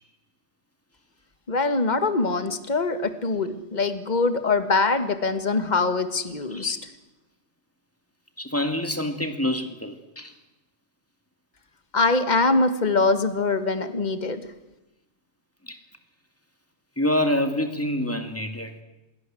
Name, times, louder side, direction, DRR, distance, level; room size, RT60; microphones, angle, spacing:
voice 1, 1.5-6.8 11.9-14.4, left 3 dB, 40° left, 10 dB, 1.9 m, -23 dB
voice 2, 8.4-10.3 12.8-12.9 15.6-15.8 17.0-18.8, left 1 dB, 10° left, 7 dB, 2.6 m, -27 dB
27.0 x 22.5 x 7.8 m, 1.0 s
omnidirectional pair, 1.2 m